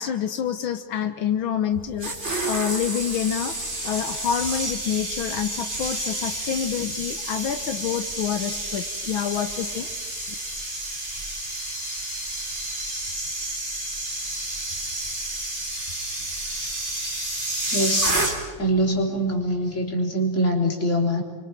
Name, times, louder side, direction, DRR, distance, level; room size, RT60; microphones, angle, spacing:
voice 1, 0.0-2.1 2.4-3.6 3.8-9.9, left 9 dB, 70° left, 8 dB, 1.2 m, -27 dB
sound 1, 1.7-18.7 19.0-19.2, right 1 dB, 20° right, 3.6 m, -30 dB
voice 2, 17.7-18.2 18.6-21.2, equal, 25° left, 0 dB, 3.6 m, -23 dB
29.0 x 24.5 x 5.9 m, 1.4 s
omnidirectional pair, 3.3 m